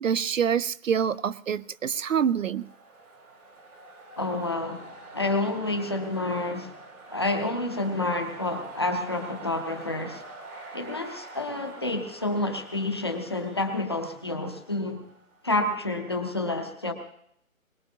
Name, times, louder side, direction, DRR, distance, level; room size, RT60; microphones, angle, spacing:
voice 1, 0.0-2.7, right 8 dB, 65° right, 18 dB, 0.5 m, -26 dB
sound 1, 1.7-15.5, right 3 dB, 90° right, 3.1 m, -46 dB
voice 2, 4.2-6.8 7.1-10.2 10.7-15.0 15.4-16.9, left 2 dB, 20° left, 4 dB, 0.7 m, -29 dB
22.0 x 18.5 x 2.8 m, 0.72 s
hypercardioid pair, 165°, 42 cm